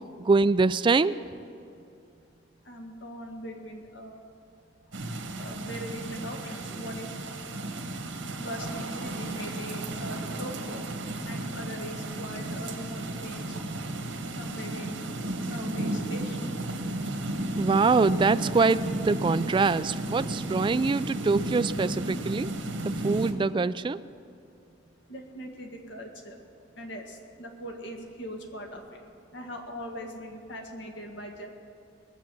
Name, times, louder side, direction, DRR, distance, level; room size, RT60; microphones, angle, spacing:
voice 1, 0.2-1.1 17.6-22.5 23.0-24.0, right 4 dB, 25° right, 13 dB, 0.3 m, -24 dB
voice 2, 2.7-4.2 5.4-7.6 8.4-10.9 11.2-13.6 14.4-15.0 15.5-16.5 25.1-26.4 26.8-29.0 29.3-31.5, equal, 75° left, 2 dB, 1.9 m, -41 dB
sound 1, 4.9-23.3, right 1 dB, 90° right, 1.5 m, -33 dB
21.0 x 7.2 x 7.6 m, 2.5 s
head